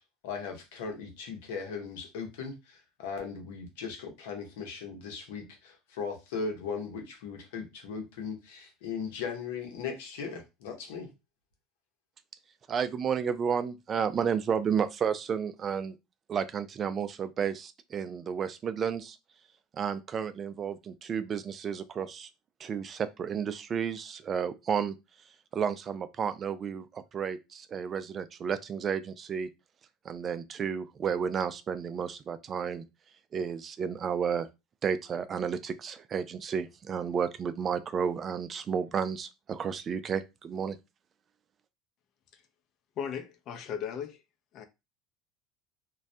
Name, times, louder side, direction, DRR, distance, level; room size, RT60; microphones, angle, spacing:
voice 1, 0.2-11.1, left 5 dB, 85° left, 0.8 m, -38 dB
voice 2, 12.7-16.0 16.3-19.2 19.7-22.3 22.6-25.0 25.5-29.5 30.0-32.9 33.3-34.5 34.8-40.8, right 7 dB, 35° right, 0.3 m, -32 dB
voice 3, 43.0-44.2 44.5-44.6, left 7 dB, 50° left, 0.5 m, -37 dB
2.3 x 2.1 x 2.6 m
supercardioid pair, 105°, 0 cm